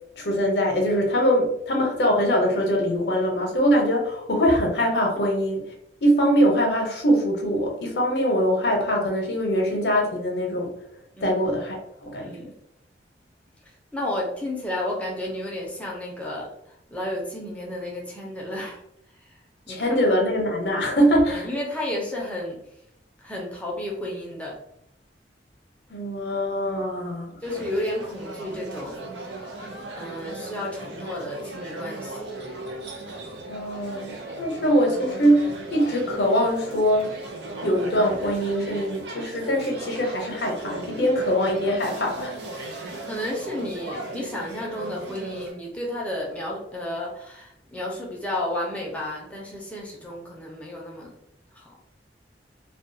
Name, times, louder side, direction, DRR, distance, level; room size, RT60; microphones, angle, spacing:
voice 1, 0.2-5.6 6.0-10.7 11.2-12.3 19.7-21.5 25.9-27.4 33.5-37.1 37.6-42.7, equal, 65° left, 1 dB, 0.7 m, -23 dB
voice 2, 12.2-12.5 13.9-16.5 16.9-18.8 19.7-20.0 21.3-22.6 23.2-24.6 27.4-29.0 30.0-32.3 43.0-51.2 51.6-51.7, left 1 dB, 10° left, -3 dB, 0.5 m, -32 dB
sound 1, 27.4-45.5, right 2 dB, 85° right, 0.5 m, -37 dB
2.3 x 2.2 x 2.6 m, 0.75 s
head